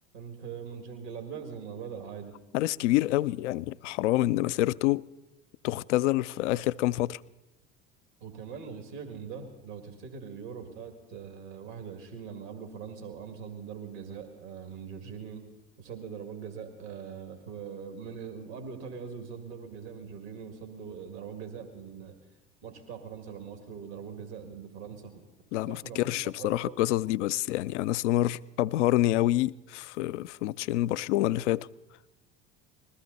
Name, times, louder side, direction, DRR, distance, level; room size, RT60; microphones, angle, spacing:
voice 1, 0.1-2.3 8.2-15.4 15.8-22.2 22.6-25.3 25.7-26.9, right 6 dB, 70° right, 2.2 m, -42 dB
voice 2, 2.5-5.0 5.6-7.2 25.5-31.7, left 15 dB, 75° left, 0.5 m, -27 dB
21.0 x 14.5 x 4.0 m
hypercardioid pair, 75°, 36 cm